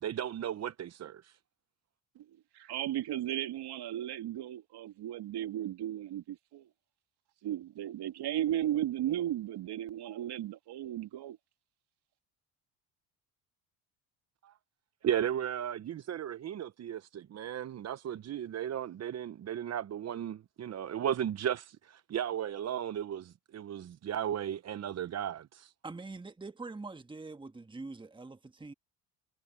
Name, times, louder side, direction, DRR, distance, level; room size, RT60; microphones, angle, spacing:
voice 1, 0.0-1.4 14.4-14.5 15.0-25.7, right 10 dB, 35° right, 0.8 m, -35 dB
voice 2, 2.5-6.7 7.4-11.4, right 12 dB, 60° right, 2.4 m, -35 dB
voice 3, 25.8-28.7, right 3 dB, 10° right, 1.4 m, -44 dB
supercardioid pair, 90°, 44 cm